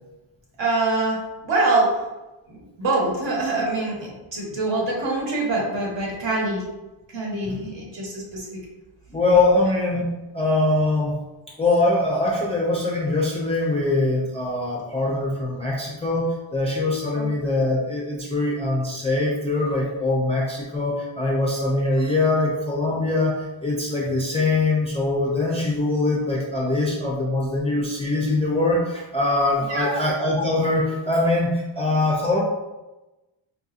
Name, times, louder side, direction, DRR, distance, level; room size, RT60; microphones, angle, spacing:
voice 1, 0.6-2.0 2.5-6.6 7.1-8.6 17.1-17.3 29.7-30.0, right 2 dB, 60° right, -2 dB, 1.1 m, -24 dB
voice 2, 9.1-10.1 10.3-11.2 11.6-32.4, left 2 dB, 15° left, -4 dB, 0.3 m, -22 dB
3.9 x 2.7 x 2.4 m, 1.1 s
wide cardioid pair, 155°, 50 cm